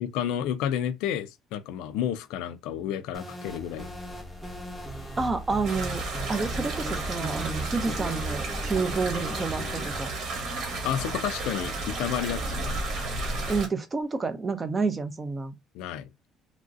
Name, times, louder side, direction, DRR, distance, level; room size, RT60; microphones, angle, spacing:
voice 1, 0.0-3.9 10.8-12.8 15.7-16.1, left 10 dB, 85° left, 0.3 m, -31 dB
sound 1, 3.1-10.0, right 1 dB, ahead, 0.9 m, -37 dB
voice 2, 5.2-10.1 13.5-15.5, right 4 dB, 20° right, 0.5 m, -29 dB
sound 2, 5.6-13.7, right 2 dB, 50° right, 1.1 m, -33 dB
3.0 x 2.6 x 2.4 m
cardioid pair, 155°, 0 cm